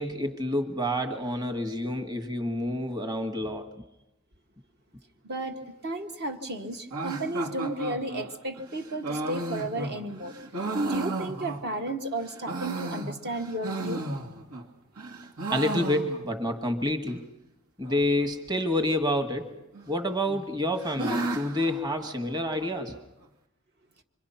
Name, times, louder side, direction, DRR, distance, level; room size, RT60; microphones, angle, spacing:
voice 1, 0.0-3.7 15.5-17.2 17.8-19.5 19.9-23.0, left 1 dB, 20° right, 5 dB, 1.7 m, -28 dB
voice 2, 5.2-10.3 10.9-14.0, right 1 dB, 45° right, 4 dB, 1.6 m, -33 dB
sound 1, 6.9-11.9 12.3-14.7 15.0-16.5 16.8-16.9 17.1-17.2 17.8-18.3 19.3-19.9 20.3-22.7, right 2 dB, 85° right, 2.7 m, -34 dB
26.0 x 24.0 x 5.8 m, 0.91 s
head